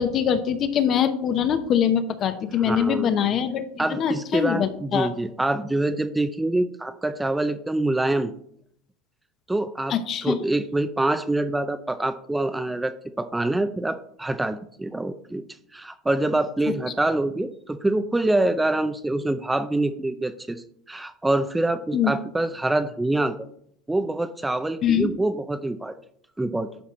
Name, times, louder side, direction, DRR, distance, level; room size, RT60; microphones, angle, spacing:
voice 1, 0.0-5.1 9.9-10.4 16.7-16.8 21.9-22.1 24.8-25.1, left 8 dB, 45° left, 10 dB, 0.9 m, -23 dB
voice 2, 2.6-3.1 3.8-8.3 9.5-15.4 15.7-23.5 23.9-25.9 26.4-26.7, right 2 dB, 10° right, 10 dB, 0.5 m, -25 dB
11.0 x 4.3 x 4.2 m, 0.67 s
supercardioid pair, 105°, 0 cm